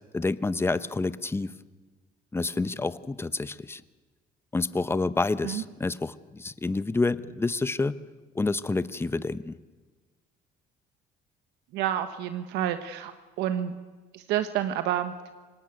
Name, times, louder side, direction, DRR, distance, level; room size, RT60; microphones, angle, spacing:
voice 1, 0.1-1.5 2.3-3.8 4.5-8.0 8.3-9.6, left 3 dB, 15° left, 15 dB, 0.9 m, -28 dB
voice 2, 11.7-13.1 13.4-13.7 14.1-15.1, right 11 dB, 90° right, 10 dB, 1.2 m, -29 dB
25.0 x 20.0 x 9.3 m, 1.3 s
cardioid pair, 110°, 17 cm